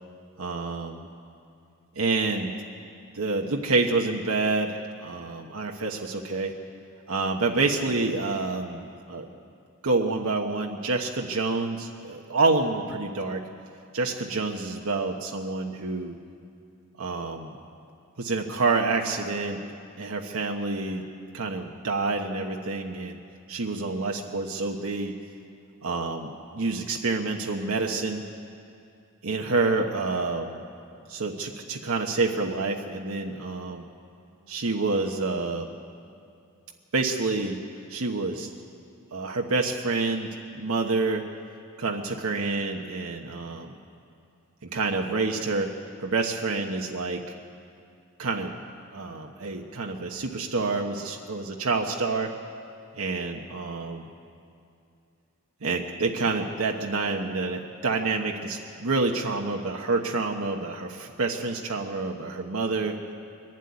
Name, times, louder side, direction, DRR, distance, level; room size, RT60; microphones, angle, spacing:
voice 1, 0.4-1.1 1.9-2.5 3.1-6.5 7.1-9.2 9.8-13.4 13.9-16.2 17.0-17.6 18.2-19.6 20.0-21.0 21.3-23.2 23.5-25.1 25.8-28.2 29.2-30.6 31.1-33.9 34.5-35.8 36.9-37.6 37.9-38.5 39.1-40.3 40.5-41.3 41.8-43.8 44.7-45.7 46.0-47.2 48.2-48.5 48.9-52.3 53.0-54.1 55.6-63.0, right 3 dB, 85° right, 1 dB, 1.1 m, -28 dB
22.5 x 12.0 x 9.6 m, 2.4 s
head